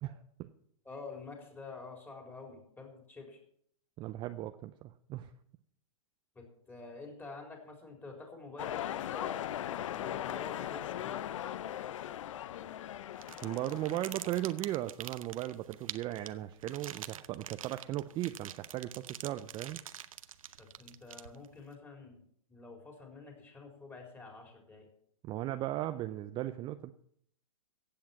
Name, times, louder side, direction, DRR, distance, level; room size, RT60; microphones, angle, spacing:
voice 1, 0.8-3.4 6.3-9.4 9.9-11.2 20.6-22.2 22.5-24.9, left 3 dB, 10° left, 1 dB, 4.1 m, -48 dB
voice 2, 4.0-5.3 13.4-19.8 25.2-26.9, right 14 dB, 25° right, 10 dB, 0.5 m, -37 dB
sound 1, 8.6-14.7, left 11 dB, 60° left, 0.6 m, -39 dB
sound 2, 13.2-21.6, right 9 dB, 70° right, 0.8 m, -46 dB
15.5 x 8.7 x 5.9 m, 0.66 s
hypercardioid pair, 120°, 18 cm